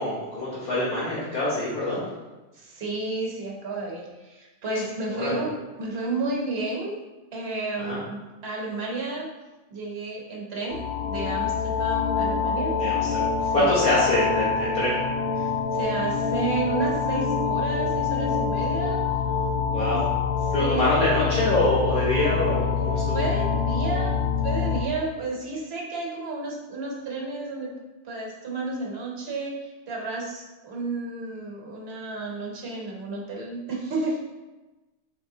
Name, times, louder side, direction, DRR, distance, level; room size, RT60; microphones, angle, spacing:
voice 1, 0.0-2.1 5.1-5.4 7.8-8.0 12.8-14.9 19.7-20.0 20.5-23.2, left 1 dB, 45° left, -10 dB, 1.2 m, -25 dB
voice 2, 2.5-7.0 7.3-9.3 9.7-12.7 13.4-13.7 15.4-19.0 19.9-20.0 20.6-20.9 23.1-27.7 28.0-34.2, right 3 dB, 60° right, -2 dB, 1.1 m, -32 dB
sound 1, 10.7-24.8, left 6 dB, 75° left, 0.9 m, -26 dB
4.6 x 3.2 x 2.7 m, 1.1 s
omnidirectional pair, 1.2 m